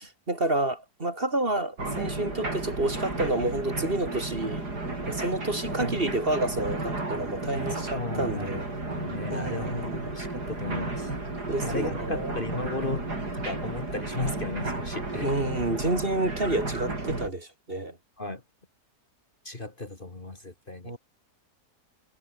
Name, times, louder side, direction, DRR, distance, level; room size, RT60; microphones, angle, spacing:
voice 1, 0.0-4.7 5.0-8.7 9.3-10.1 11.5-12.4 15.1-18.0 20.8-21.0, right 2 dB, 35° right, 3.6 m, -29 dB
sound 1, 1.8-17.3, right 2 dB, 80° right, 6.6 m, -33 dB
voice 2, 7.9-8.6 8.9-11.1 11.6-13.1 13.3-15.3 18.2-18.4 19.4-20.9, left 2 dB, 30° left, 2.5 m, -35 dB
omnidirectional pair, 1.7 m